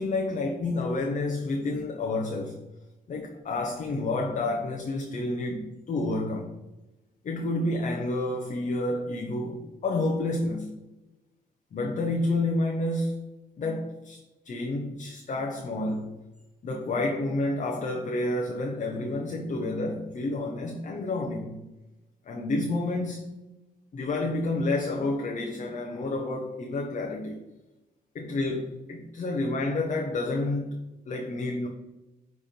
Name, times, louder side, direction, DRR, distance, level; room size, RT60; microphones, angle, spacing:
voice 1, 0.0-2.6 3.1-6.5 7.2-10.7 11.7-13.3 13.6-14.2 14.4-16.1 16.6-21.6 22.3-23.3 23.9-27.4 28.1-30.7 31.1-31.7, left 2 dB, 55° left, 1.0 m, -29 dB
10.0 x 3.6 x 4.4 m
cardioid pair, 105°, 15 cm